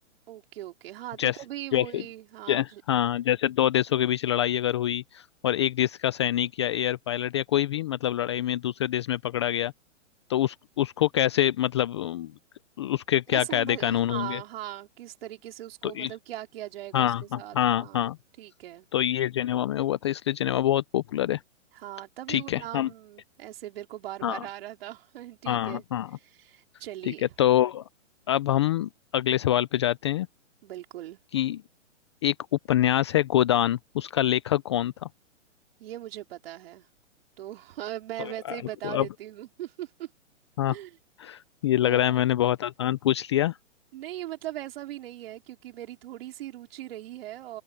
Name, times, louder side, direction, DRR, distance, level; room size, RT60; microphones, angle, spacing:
voice 1, 0.3-2.8 13.3-18.1 18.4-18.9 21.7-25.8 26.1-27.3 30.6-31.2 35.8-36.9 37.4-40.1 40.7-41.0 41.8-42.2 43.9-47.6, right 14 dB, 50° right, 4.2 m, -40 dB
voice 2, 1.7-2.0 2.5-9.7 10.3-12.3 12.8-14.4 15.8-16.1 16.9-18.2 18.9-21.4 22.3-22.9 24.2-24.4 25.5-26.1 27.1-27.8 28.3-30.3 31.3-31.6 32.2-32.3 32.7-35.1 38.5-38.6 38.8-39.1 40.6-40.7 41.2-43.6, left 12 dB, 25° left, 0.4 m, -25 dB
hypercardioid pair, 145°, 37 cm